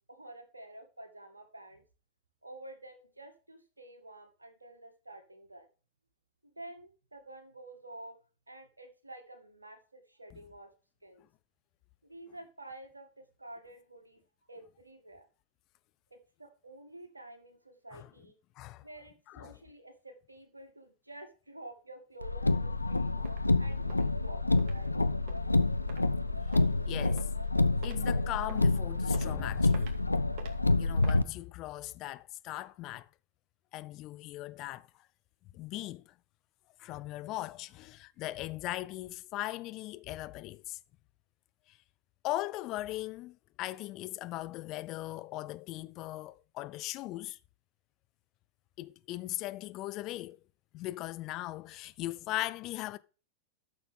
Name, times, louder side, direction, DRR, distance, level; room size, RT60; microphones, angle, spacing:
voice 1, 0.1-1.8 2.4-5.7 6.4-8.2 8.5-10.7 11.0-11.2 12.0-14.2 14.5-15.3 16.1-18.4 18.8-23.1 23.6-25.0, right 1 dB, 80° right, 2.1 m, -50 dB
voice 2, 19.3-19.6 23.2-23.5 26.9-27.3 27.7-30.0 30.8-33.1 33.7-34.9 35.5-36.1 36.8-40.8 41.7-41.8 42.2-47.4 48.8-50.4 50.7-53.0, left 16 dB, 40° left, 0.6 m, -39 dB
Car, 22.2-31.2, left 2 dB, 85° left, 0.5 m, -28 dB
sound 1, 22.8-22.9 23.3-23.4 23.9-24.0 24.6-24.7 25.3-25.4 25.9-26.0 26.5-26.7 27.2-27.5 27.8-28.0 28.5-28.7 29.1-29.3 29.7-30.0 30.4-30.5 31.0-31.2, right 5 dB, 45° right, 2.3 m, -48 dB
12.5 x 6.8 x 3.8 m
figure-of-eight pair, 90°, 0 cm